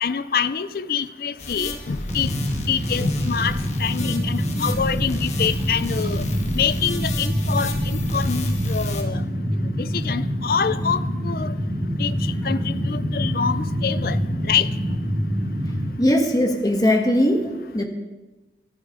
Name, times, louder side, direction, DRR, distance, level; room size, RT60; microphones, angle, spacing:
voice 1, 0.0-2.3 2.7-6.2 6.5-9.2 9.8-11.5 12.0-12.1 12.4-14.2 14.4-14.7, left 7 dB, 55° left, 15 dB, 0.5 m, -26 dB
sound 1, 1.4-9.0, left 2 dB, 40° left, 1.6 m, -33 dB
sound 2, 2.0-15.9, equal, 15° right, 4.7 m, -25 dB
voice 2, 16.0-17.8, left 1 dB, 20° left, 3 dB, 1.4 m, -20 dB
24.5 x 11.0 x 3.7 m, 1.1 s
head